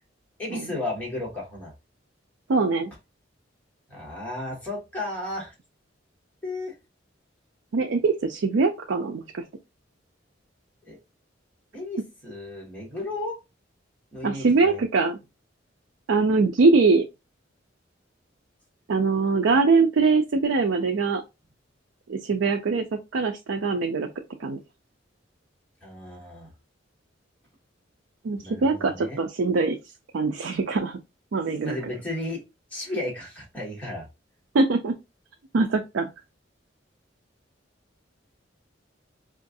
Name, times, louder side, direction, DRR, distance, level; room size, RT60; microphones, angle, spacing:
voice 1, 0.4-1.7 3.9-5.5 6.4-6.7 10.8-11.0 11.7-13.4 14.1-14.8 25.8-26.5 28.4-29.2 31.6-32.4 32.7-34.0, left 2 dB, 10° left, 1.8 m, -34 dB
voice 2, 2.5-2.9 7.7-9.4 14.2-15.2 16.1-17.0 18.9-21.2 22.1-22.8 23.1-24.1 24.4-24.6 28.2-29.8 30.1-31.0 31.3-31.8 34.5-34.9 35.5-36.1, right 4 dB, 75° right, 0.4 m, -22 dB
4.5 x 2.4 x 2.5 m
head